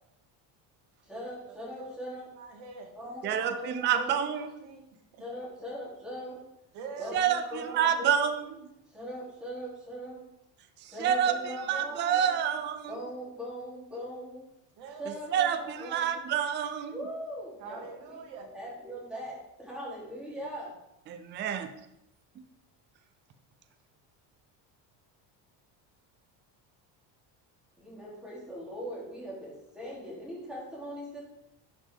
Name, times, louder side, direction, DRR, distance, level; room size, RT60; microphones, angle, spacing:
voice 1, 1.0-2.3 2.9-4.2 5.2-6.4 7.0-8.1 8.9-10.2 10.8-12.3 12.9-14.5 15.0-16.3 16.9-18.2 18.5-20.7 27.8-31.2, equal, ahead, -7 dB, 2.9 m, -40 dB
voice 2, 1.7-2.9 3.4-3.5 4.1-5.2 6.7-7.9 11.2-11.4 11.7-12.5 14.8-16.1 17.6-18.5, right 4 dB, 70° right, 2 dB, 2.0 m, -46 dB
voice 3, 3.2-4.5 7.1-8.4 10.8-12.9 15.3-16.9 21.1-21.7, right 8 dB, 25° right, 9 dB, 0.4 m, -28 dB
11.5 x 5.5 x 3.5 m, 0.85 s
cardioid pair, 165°, 45 cm